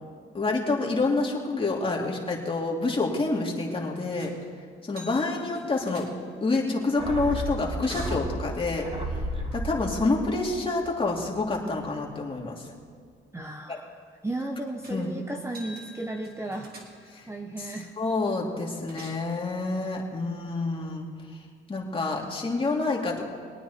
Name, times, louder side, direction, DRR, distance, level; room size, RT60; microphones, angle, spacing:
voice 1, 0.3-4.3 4.8-6.1 6.4-8.9 9.5-12.6 13.7-13.8 14.9-15.1 17.1-17.2 18.0-21.1 21.7-23.3, left 3 dB, 25° left, -2 dB, 2.7 m, -27 dB
sound 1, 4.2-4.5 4.9-6.5 7.3-8.3 14.8-15.1 15.4-17.3 18.6-19.3, right 1 dB, 50° right, 3.3 m, -46 dB
sound 2, 7.0-11.6 11.9-12.0, right 1 dB, 30° right, 2.3 m, -34 dB
voice 2, 13.3-17.9, right 2 dB, 15° right, 3 dB, 0.9 m, -35 dB
23.0 x 9.2 x 4.4 m, 2.1 s
cardioid pair, 90°, 20 cm